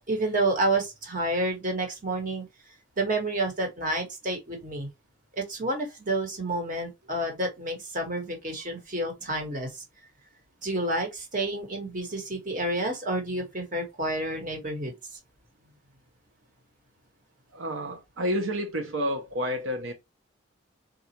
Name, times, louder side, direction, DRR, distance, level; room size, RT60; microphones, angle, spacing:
voice 1, 0.1-2.4 3.0-4.9 5.3-9.8 10.6-14.9, right 2 dB, 40° right, 1.3 m, -29 dB
voice 2, 17.5-19.9, equal, 70° right, 0.8 m, -30 dB
3.9 x 2.4 x 4.3 m
head